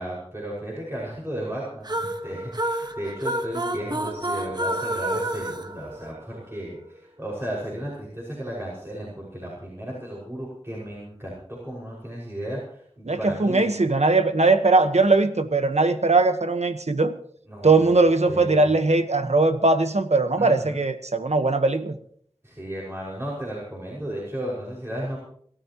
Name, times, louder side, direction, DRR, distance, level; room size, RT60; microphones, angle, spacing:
voice 1, 0.0-13.8 17.5-18.8 20.4-20.8 22.4-25.2, right 1 dB, 20° right, 5.6 m, -34 dB
sound 1, 1.8-6.6, right 1 dB, 40° right, 1.2 m, -29 dB
voice 2, 13.0-17.2 17.6-22.0, right 3 dB, 80° right, 1.2 m, -20 dB
28.0 x 13.0 x 3.0 m
wide cardioid pair, 50°, 11 cm